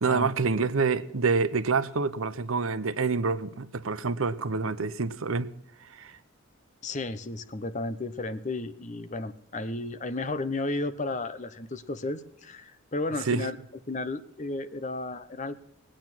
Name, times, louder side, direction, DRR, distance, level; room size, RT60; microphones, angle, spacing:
voice 1, 0.0-5.5 5.9-6.1 13.3-13.5, right 4 dB, 80° right, 0.8 m, -27 dB
voice 2, 6.8-13.6 13.9-15.5, left 2 dB, 35° left, 0.8 m, -33 dB
19.5 x 8.9 x 6.1 m
head